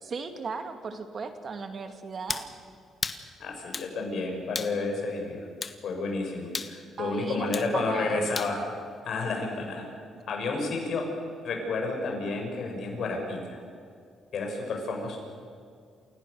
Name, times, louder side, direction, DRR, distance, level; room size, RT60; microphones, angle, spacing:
voice 1, 0.0-2.5 7.0-8.3, right 5 dB, 45° right, 7 dB, 2.2 m, -37 dB
sound 1, 2.3-2.5 3.0-3.2 3.7-3.9 4.5-4.8 5.6-5.8 6.5-6.7 7.5-7.7 8.4-8.5, left 4 dB, 35° left, 1.4 m, -33 dB
voice 2, 3.4-5.5 5.8-8.6 9.0-9.9 10.3-11.1 11.4-13.6 14.3-15.2, left 3 dB, 65° left, 1 dB, 6.7 m, -31 dB
28.5 x 17.0 x 6.9 m, 2.2 s
cardioid pair, 90°, 0 cm